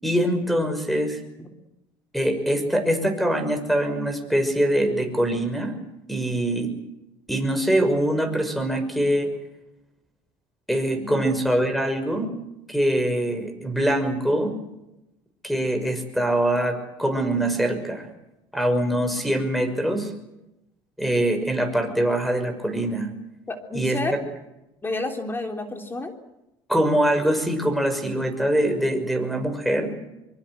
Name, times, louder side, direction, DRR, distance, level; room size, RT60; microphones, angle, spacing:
voice 1, 0.0-1.2 2.1-5.8 6.1-6.7 7.3-9.3 10.7-12.3 12.7-14.6 15.4-18.1 18.5-20.1 21.0-23.1 23.7-24.2 26.7-30.0, right 1 dB, ahead, 9 dB, 6.1 m, -23 dB
voice 2, 23.5-24.2 24.8-26.1, left 2 dB, 20° left, 5 dB, 3.4 m, -30 dB
24.0 x 23.5 x 8.1 m, 0.90 s
supercardioid pair, 105°, 11 cm